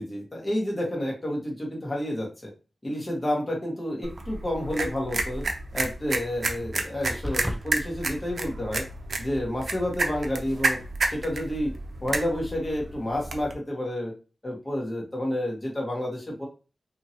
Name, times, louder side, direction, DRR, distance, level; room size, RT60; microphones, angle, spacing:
voice 1, 0.0-2.5 2.8-5.4 5.7-8.8 9.2-10.8 11.1-11.7 12.0-14.1 14.4-16.5, left 1 dB, 30° left, -1 dB, 1.3 m, -30 dB
sound 1, 4.0-13.5, right 2 dB, 65° right, 0.5 m, -31 dB
sound 2, 7.2-7.6, equal, ahead, 0.3 m, -30 dB
2.8 x 2.7 x 2.8 m, 0.33 s
wide cardioid pair, 85°, 0 cm